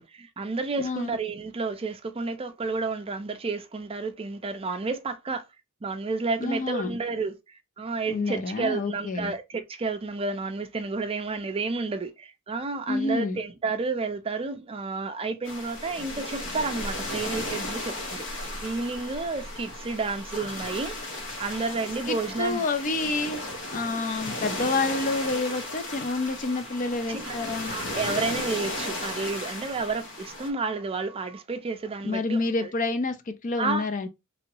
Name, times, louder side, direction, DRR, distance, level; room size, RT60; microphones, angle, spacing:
voice 1, 0.0-5.4 5.8-7.4 7.8-21.0 21.4-22.6 27.1-27.4 27.6-32.7 33.6-33.9, right 3 dB, 25° right, 0.4 m, -31 dB
voice 2, 0.8-1.2 6.4-7.0 8.1-9.3 12.9-13.4 22.1-23.4 23.7-27.7 32.0-34.1, left 3 dB, 35° left, 0.4 m, -28 dB
sound 1, 15.4-30.5, left 1 dB, 60° left, 1.0 m, -35 dB
3.0 x 2.7 x 2.7 m
head